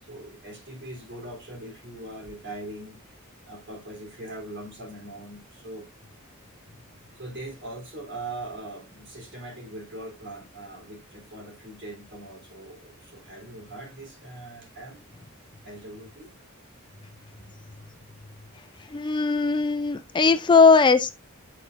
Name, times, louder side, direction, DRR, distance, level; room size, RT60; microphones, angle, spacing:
voice 1, 0.0-3.0 3.5-5.9 7.1-15.0 15.6-16.3 17.4-17.5, right 1 dB, 60° right, 3.4 m, -41 dB
voice 2, 18.9-21.2, left 4 dB, 20° left, 0.4 m, -19 dB
8.1 x 5.8 x 2.5 m
head